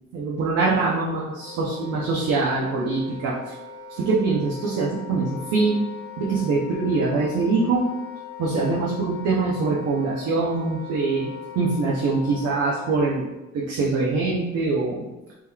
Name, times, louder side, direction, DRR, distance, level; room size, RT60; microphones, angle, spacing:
voice 1, 0.1-3.5 3.9-5.8 6.2-7.9 8.4-11.3 11.6-13.3 13.5-15.0, right 3 dB, 55° right, -4 dB, 0.6 m, -23 dB
Wind instrument woodwind instrument, 1.3-13.3, left 6 dB, 10° left, 0.8 m, -40 dB
3.6 x 2.9 x 2.2 m, 1.0 s
cardioid pair, 155°, 31 cm